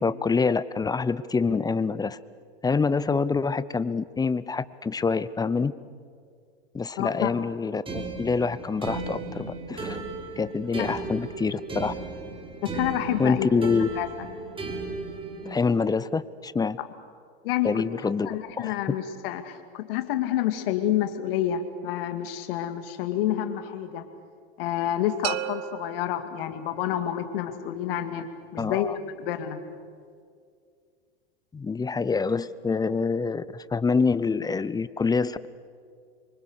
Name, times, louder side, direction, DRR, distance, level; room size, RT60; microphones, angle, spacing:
voice 1, 0.0-2.2 2.6-5.7 6.7-10.0 10.4-12.0 13.2-13.9 15.4-16.8 17.6-18.7 28.6-29.0 31.5-35.5, left 4 dB, 10° left, 17 dB, 0.7 m, -26 dB
voice 2, 7.0-7.3 10.8-10.9 12.6-13.5 14.0-14.1 17.4-17.8 18.3-24.0 24.6-29.6, left 11 dB, 60° left, 8 dB, 2.3 m, -28 dB
sound 1, 7.9-15.5, right 3 dB, 15° right, 3.4 m, -35 dB
sound 2, 25.2-27.1, right 16 dB, 45° right, 0.8 m, -35 dB
26.0 x 24.0 x 6.6 m, 2.2 s
hypercardioid pair, 90°, 32 cm